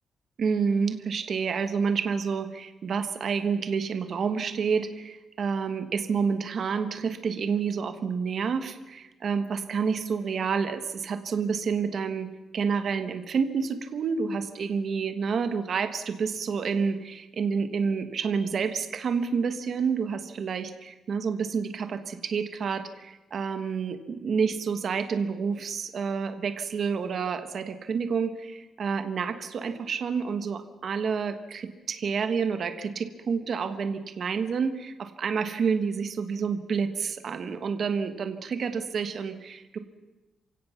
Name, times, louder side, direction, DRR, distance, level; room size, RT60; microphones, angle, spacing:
voice 1, 0.4-12.3 12.5-39.8, right 5 dB, 45° right, 9 dB, 1.2 m, -29 dB
27.5 x 16.5 x 5.7 m, 1.1 s
wide cardioid pair, 165°, 0 cm